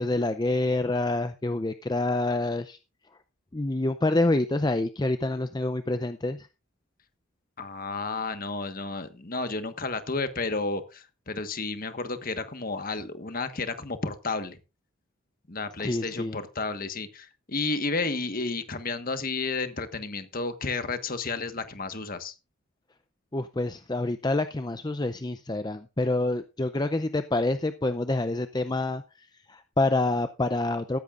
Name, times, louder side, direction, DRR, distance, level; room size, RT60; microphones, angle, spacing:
voice 1, 0.0-2.8 3.5-6.5 15.8-16.4 23.3-31.0, left 2 dB, 20° left, 0.5 m, -27 dB
voice 2, 7.6-14.6 15.5-22.3, left 3 dB, 40° left, 1.4 m, -32 dB
15.0 x 13.5 x 2.5 m
head